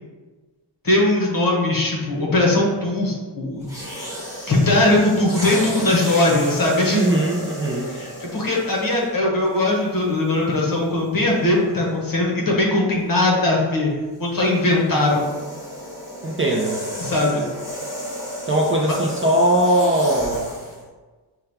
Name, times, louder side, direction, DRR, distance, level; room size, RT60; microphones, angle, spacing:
voice 1, 0.8-3.7 4.5-7.2 7.8-13.9 14.2-15.3 17.0-17.5, left 2 dB, 50° left, -2 dB, 1.0 m, -20 dB
sound 1, 3.6-9.1 10.0-10.2 14.1-20.8, equal, 5° right, 1.0 m, -33 dB
voice 2, 6.9-7.9 16.2-16.8 18.5-20.5, right 1 dB, 30° right, -2 dB, 0.4 m, -20 dB
5.7 x 2.3 x 3.4 m, 1.3 s
wide cardioid pair, 175°, 44 cm